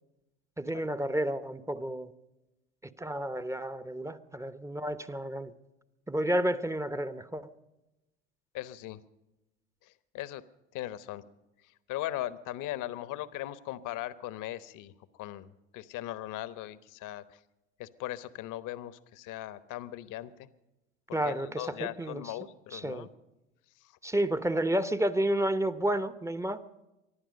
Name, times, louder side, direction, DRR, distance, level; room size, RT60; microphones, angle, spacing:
voice 1, 0.6-2.1 2.8-5.5 6.1-7.5 21.1-22.2 22.7-23.1 24.0-26.6, right 1 dB, 5° right, 13 dB, 0.9 m, -31 dB
voice 2, 8.5-9.0 9.8-10.4 10.7-11.2 11.6-14.9 15.2-17.4 17.8-20.5 21.1-23.1 23.8-24.0, left 14 dB, 55° left, 15 dB, 1.1 m, -39 dB
24.5 x 11.5 x 5.2 m, 0.98 s
hypercardioid pair, 75°, 38 cm